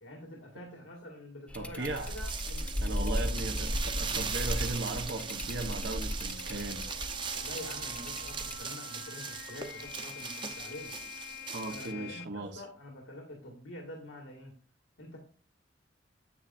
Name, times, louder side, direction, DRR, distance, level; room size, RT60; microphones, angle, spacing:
voice 1, 0.0-3.7 7.4-10.9 11.7-14.5 15.0-15.2, left 1 dB, 85° left, 1 dB, 1.9 m, -46 dB
sound 1, 1.5-8.6, left 1 dB, 5° left, 0.6 m, -36 dB
voice 2, 1.5-2.1 2.8-6.9 11.5-12.6, right 2 dB, 65° right, 2 dB, 1.0 m, -37 dB
sound 2, 1.8-11.9, right 6 dB, 25° right, 0.8 m, -39 dB
sound 3, 2.6-12.2, left 7 dB, 55° left, 0.5 m, -49 dB
9.6 x 8.2 x 2.5 m, 0.41 s
head